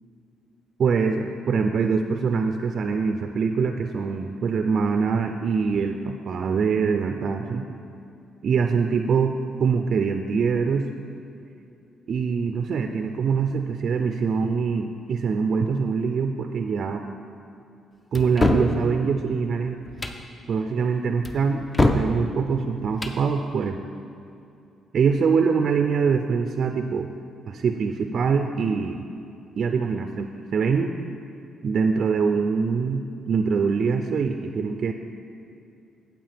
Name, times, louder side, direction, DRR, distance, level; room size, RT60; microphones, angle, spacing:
voice 1, 0.8-7.7 8.4-10.9 12.1-17.1 18.1-19.8 20.5-23.8 24.9-27.1 27.5-29.1 29.6-30.9 31.6-34.9, right 5 dB, 55° right, 6 dB, 0.3 m, -24 dB
sound 1, 18.1-18.7 19.9-20.2 21.2-22.1 22.9-23.2, left 2 dB, 25° left, 0.5 m, -23 dB
9.1 x 7.3 x 3.4 m, 2.6 s
cardioid pair, 90°, 0 cm